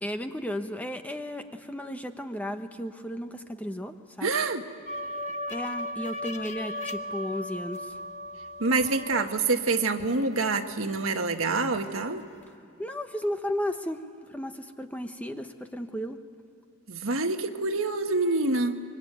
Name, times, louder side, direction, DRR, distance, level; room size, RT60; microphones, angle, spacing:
voice 1, 0.0-4.3 5.5-7.9 12.8-14.0 14.3-16.2, equal, 5° left, 6 dB, 1.0 m, -34 dB
voice 2, 4.2-4.7 8.6-12.2 16.9-18.8, right 3 dB, 70° right, 6 dB, 1.5 m, -26 dB
sound 1, 4.9-11.1 11.4-12.5, left 1 dB, 30° left, 1.0 m, -38 dB
25.5 x 23.5 x 9.3 m, 2.5 s
head